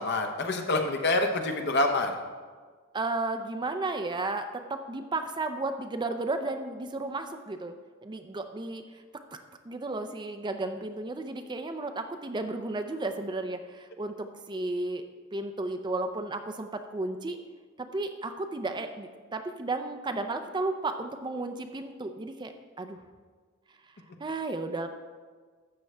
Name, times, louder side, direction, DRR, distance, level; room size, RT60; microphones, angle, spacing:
voice 1, 0.0-2.2, left 2 dB, 55° left, 5 dB, 1.0 m, -26 dB
voice 2, 2.9-7.7 8.0-8.8 9.6-15.0 15.3-17.4 17.8-22.5 22.8-23.0 24.2-24.9, right 2 dB, 20° right, 7 dB, 0.5 m, -33 dB
12.5 x 7.6 x 3.3 m, 1.5 s
head